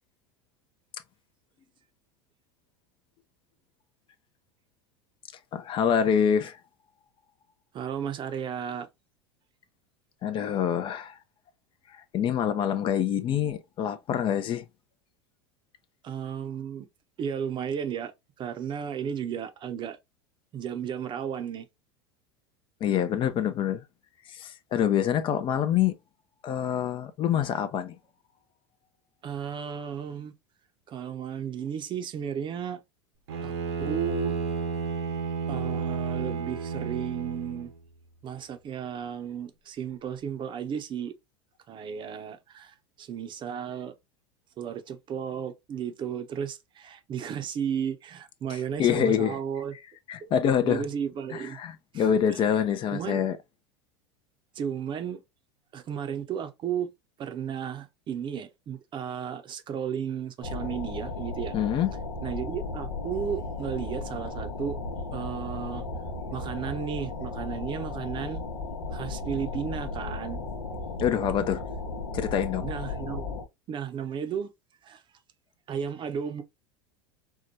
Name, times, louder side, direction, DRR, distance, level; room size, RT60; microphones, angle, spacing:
voice 1, 5.5-6.6 10.2-11.2 11.9-14.6 22.8-23.8 24.3-25.9 26.4-28.0 48.5-49.4 50.1-50.8 51.3-53.4 61.5-61.9 71.0-71.6 72.1-72.7, left 8 dB, 40° left, 0.5 m, -26 dB
voice 2, 7.7-8.9 16.0-16.9 17.2-18.1 18.4-20.0 20.5-21.7 29.2-30.3 30.9-32.8 33.4-33.5 33.8-34.4 35.5-37.7 38.2-41.1 41.7-43.9 44.6-49.7 50.6-51.6 51.9-52.0 52.3-52.6 52.9-53.2 54.5-55.2 55.7-56.9 57.2-61.5 62.2-64.8 65.1-65.8 66.3-68.4 68.9-70.4 72.6-73.3 73.7-74.5 74.8-75.0 75.7-76.4, right 8 dB, 35° right, 0.7 m, -34 dB
Bowed string instrument, 33.3-37.7, right 5 dB, 80° right, 1.0 m, -31 dB
sound 1, 60.4-73.4, left 3 dB, 85° left, 0.8 m, -35 dB
4.5 x 2.2 x 2.6 m
hypercardioid pair, 90°, 14 cm